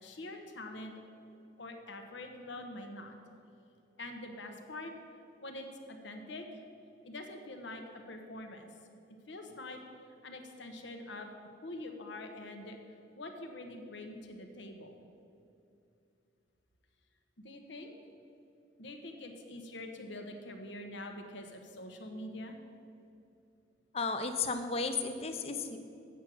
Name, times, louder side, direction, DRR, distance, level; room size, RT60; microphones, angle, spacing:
voice 1, 0.0-0.9 1.6-3.2 4.0-4.9 5.4-6.6 7.0-8.7 9.3-9.8 10.2-11.3 11.6-12.8 13.2-14.9 17.4-17.9 18.8-22.6, left 1 dB, 75° left, 4 dB, 1.1 m, -45 dB
voice 2, 23.9-25.8, left 4 dB, 30° left, 7 dB, 0.6 m, -34 dB
8.1 x 6.4 x 7.6 m, 2.6 s
head